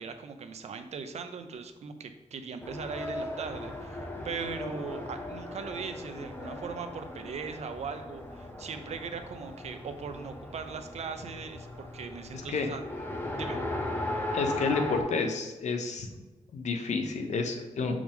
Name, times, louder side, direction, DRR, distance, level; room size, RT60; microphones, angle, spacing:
voice 1, 0.0-4.0 4.2-12.8 13.3-13.6, right 5 dB, 70° right, 8 dB, 0.6 m, -39 dB
Race car auto racing, 2.6-15.0, left 1 dB, 20° left, 0.8 m, -38 dB
voice 2, 14.3-16.1 16.5-18.0, left 4 dB, 85° left, 5 dB, 0.8 m, -30 dB
6.0 x 4.9 x 3.6 m, 1.1 s
wide cardioid pair, 145°, 12 cm